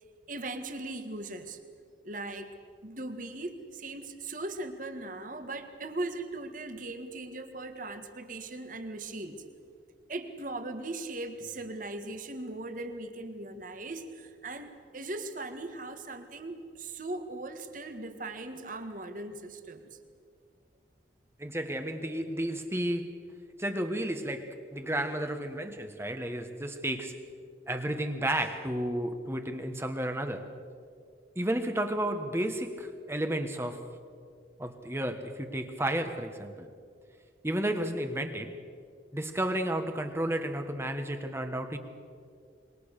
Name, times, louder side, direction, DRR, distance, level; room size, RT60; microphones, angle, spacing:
voice 1, 0.3-1.6 2.0-2.6 2.8-9.4 10.1-20.0, right 2 dB, 45° right, 7 dB, 1.9 m, -39 dB
voice 2, 21.4-23.2 23.6-27.2 27.7-30.5 31.3-33.9 34.6-36.7 37.4-38.6 39.1-41.8, right 1 dB, 15° right, 6 dB, 1.4 m, -32 dB
26.5 x 23.5 x 6.7 m, 2.3 s
head